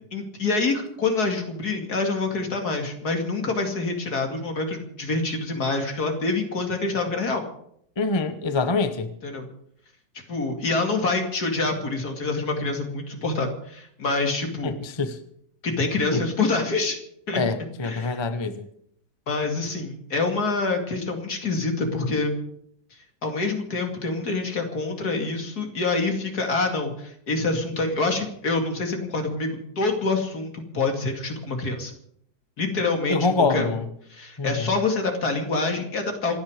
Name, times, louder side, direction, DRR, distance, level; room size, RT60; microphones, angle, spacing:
voice 1, 0.1-7.4 9.2-9.5 10.3-14.8 15.6-17.0 17.3-17.4 17.8-18.2 19.3-22.3 23.2-29.5 29.8-31.9 32.6-33.7 34.1-36.4, left 3 dB, 60° left, 3 dB, 2.9 m, -26 dB
voice 2, 8.0-9.1 14.6-15.2 16.1-16.2 17.3-18.6 33.1-33.9 34.4-34.7, left 3 dB, 20° left, 9 dB, 0.8 m, -25 dB
27.5 x 9.7 x 5.0 m, 0.70 s
omnidirectional pair, 1.9 m